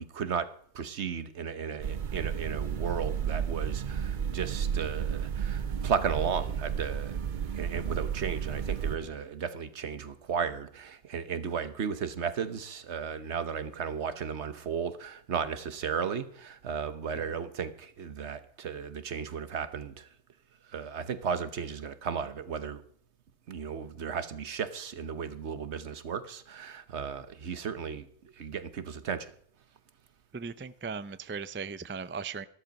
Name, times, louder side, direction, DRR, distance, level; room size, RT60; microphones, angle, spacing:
voice 1, 0.0-20.1 20.7-22.8 23.5-28.1 28.4-29.3, right 6 dB, 75° right, 1.3 m, -35 dB
sound 1, 1.8-9.0, right 8 dB, 50° right, 0.8 m, -32 dB
voice 2, 30.3-32.4, right 5 dB, 20° right, 0.3 m, -38 dB
13.5 x 12.5 x 5.3 m
omnidirectional pair, 1.2 m